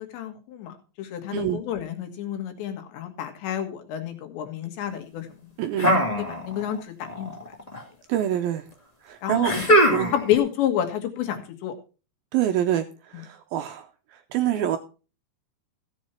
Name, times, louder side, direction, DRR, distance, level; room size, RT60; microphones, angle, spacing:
voice 1, 0.0-5.5 6.2-7.3 9.2-9.5 9.9-11.8, left 10 dB, 85° left, 6 dB, 3.9 m, -29 dB
voice 2, 5.6-5.9 8.1-8.7 9.0-9.5 9.9-10.1 12.3-14.8, right 11 dB, 85° right, 7 dB, 2.2 m, -26 dB
sound 1, 5.8-6.8 7.0-7.8 9.4-10.4, equal, 15° left, 1.2 m, -21 dB
15.5 x 7.4 x 4.4 m, 0.34 s
omnidirectional pair, 5.0 m